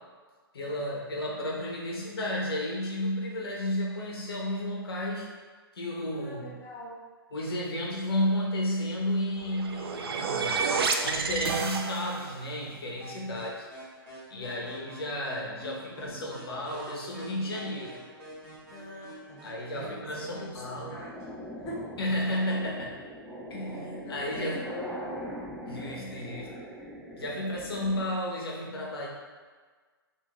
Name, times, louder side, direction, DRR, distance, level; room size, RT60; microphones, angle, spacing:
voice 1, 0.5-5.3 5.7-6.5 7.3-10.6 11.0-13.7 14.3-18.0 19.4-21.0 22.0-23.0 23.5-24.6 25.7-26.6 27.2-29.1, left 1 dB, 70° left, -3 dB, 0.9 m, -32 dB
voice 2, 6.1-7.0 13.2-13.5 14.4-14.9 18.7-19.5 19.8-21.1 21.6-21.9 24.0-25.2, left 1 dB, 30° left, -5 dB, 0.7 m, -43 dB
sound 1, 9.4-12.4, right 5 dB, 75° right, 0.4 m, -29 dB
sound 2, 13.0-20.6, equal, 25° right, 1.5 m, -48 dB
sound 3, 15.9-17.9 18.4-18.9 19.3-28.0, equal, 10° right, 0.6 m, -42 dB
3.7 x 2.6 x 3.0 m, 1.5 s
hypercardioid pair, 130°, 13 cm